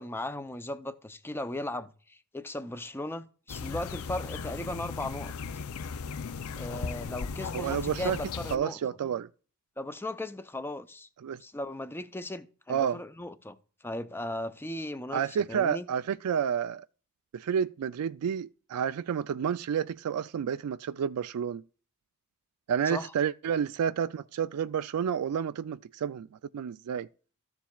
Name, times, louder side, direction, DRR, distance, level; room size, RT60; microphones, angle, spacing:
voice 1, 0.0-5.3 6.5-8.8 9.8-11.1 11.4-13.6 13.8-15.2 15.5-15.9 22.8-23.1, left 1 dB, 10° left, 0.5 m, -37 dB
sound 1, 3.5-8.6, left 5 dB, 70° left, 0.5 m, -37 dB
voice 2, 7.5-8.2 8.5-9.3 11.2-11.4 12.7-13.0 15.1-16.8 17.3-21.6 22.7-26.3 26.5-27.1, right 8 dB, 85° right, 0.3 m, -30 dB
14.0 x 7.2 x 2.3 m
head